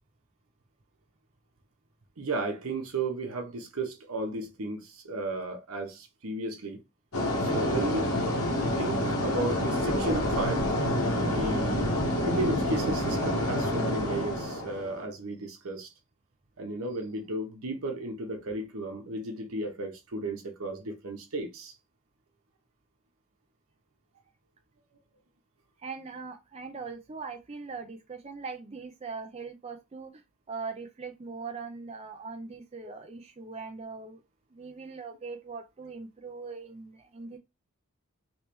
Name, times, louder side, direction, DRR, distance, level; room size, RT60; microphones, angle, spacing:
voice 1, 2.2-6.8 7.4-8.1 8.8-10.7 11.3-15.9 16.6-21.7, right 2 dB, 75° right, 0.9 m, -34 dB
sound 1, 7.1-15.0, left 1 dB, 85° left, 1.3 m, -28 dB
voice 2, 25.8-30.2 30.5-34.2 34.5-37.4, right 4 dB, 30° right, 0.4 m, -41 dB
3.2 x 3.1 x 3.0 m
head